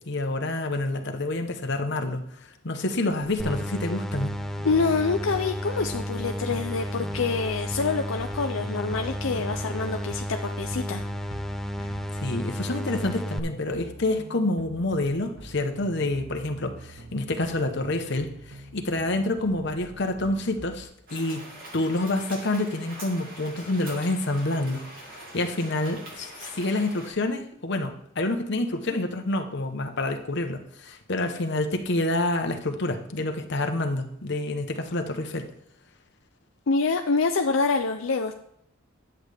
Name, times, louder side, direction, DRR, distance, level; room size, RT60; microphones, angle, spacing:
voice 1, 0.1-4.4 12.1-21.5 21.7-24.9 25.3-35.5, left 2 dB, 60° left, 5 dB, 1.0 m, -28 dB
sound 1, 3.1-20.9, right 2 dB, 65° right, 1.0 m, -45 dB
sound 2, 3.4-13.4, equal, ahead, 0.4 m, -32 dB
voice 2, 4.6-11.0 11.8-11.9 36.7-38.3, left 4 dB, 80° left, 5 dB, 0.6 m, -26 dB
sound 3, 21.1-27.1, right 1 dB, 45° right, 2.6 m, -43 dB
10.5 x 7.9 x 3.4 m, 0.75 s
head